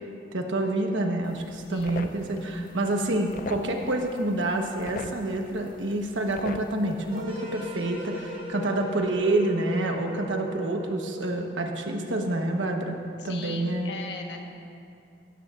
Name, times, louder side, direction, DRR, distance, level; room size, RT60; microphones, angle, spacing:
voice 1, 0.3-13.0 13.2-13.9, right 2 dB, 85° right, 3 dB, 1.2 m, -28 dB
sound 1, 1.2-7.2, left 3 dB, 50° left, 0.5 m, -42 dB
voice 2, 1.7-2.1 13.2-14.4, left 4 dB, 65° left, 2 dB, 1.3 m, -39 dB
sound 2, 7.1-11.4, left 1 dB, 25° right, 2.0 m, -38 dB
16.5 x 14.0 x 2.5 m, 2.5 s
head